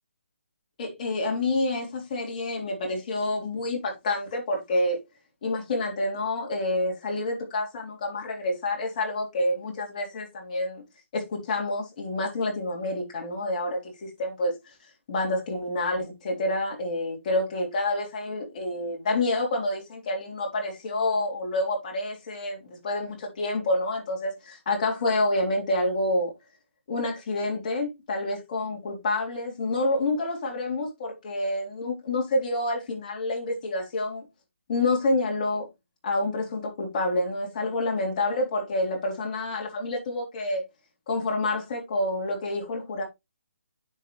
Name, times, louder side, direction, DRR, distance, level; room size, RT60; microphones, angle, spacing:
voice 1, 0.8-5.0 5.4-10.8 11.1-14.5 15.1-26.3 26.9-34.2 34.7-35.7 36.0-40.6 41.1-43.0, left 2 dB, 35° left, 3.5 m, -28 dB
9.8 x 6.3 x 3.1 m
hypercardioid pair, 160°, 7 cm